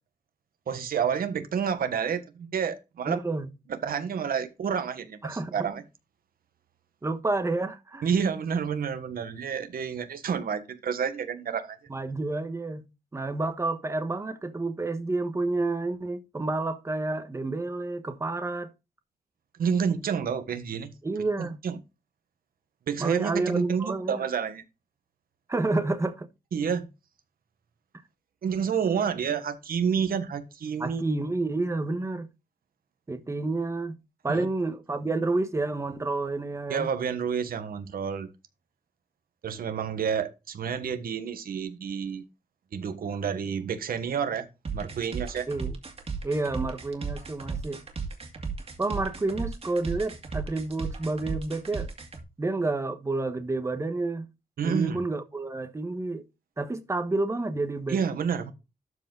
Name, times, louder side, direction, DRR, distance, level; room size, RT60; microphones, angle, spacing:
voice 1, 0.7-3.2 3.7-5.8 8.0-11.8 19.6-20.9 21.4-21.8 22.9-24.6 26.5-26.9 28.4-31.0 34.3-34.5 36.7-38.3 39.4-42.2 42.7-45.5 54.6-55.0 57.9-58.5, right 7 dB, 85° right, 1.4 m, -29 dB
voice 2, 3.0-3.5 5.2-5.7 7.0-8.1 11.9-12.9 13.1-18.7 21.0-21.5 23.0-24.2 25.5-26.3 30.8-32.3 33.1-33.9 34.2-36.9 45.5-45.8 46.2-47.8 48.8-51.9 52.4-54.3 54.6-56.2 56.6-58.0, right 2 dB, 20° right, 1.3 m, -29 dB
sound 1, 44.6-52.2, right 5 dB, 45° right, 2.3 m, -35 dB
12.5 x 4.9 x 3.9 m
wide cardioid pair, 155°, 15 cm